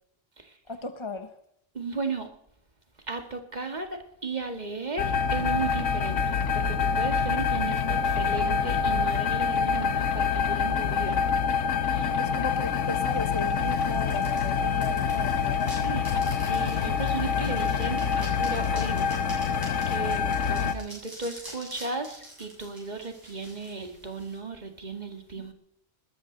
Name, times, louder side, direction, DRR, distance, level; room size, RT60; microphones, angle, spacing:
voice 1, 0.7-1.3 12.0-15.8 25.4-25.5, left 3 dB, 25° left, 8 dB, 1.0 m, -36 dB
voice 2, 1.7-2.3 3.1-11.2 11.8-12.1 15.8-16.0 16.5-19.1 19.9-25.5, right 4 dB, 35° right, 5 dB, 2.1 m, -35 dB
sound 1, 5.0-20.7, left 6 dB, 80° left, 1.3 m, -26 dB
sound 2, 12.5-24.4, equal, 15° right, 8.1 m, -47 dB
20.5 x 13.0 x 4.0 m, 0.75 s
omnidirectional pair, 1.3 m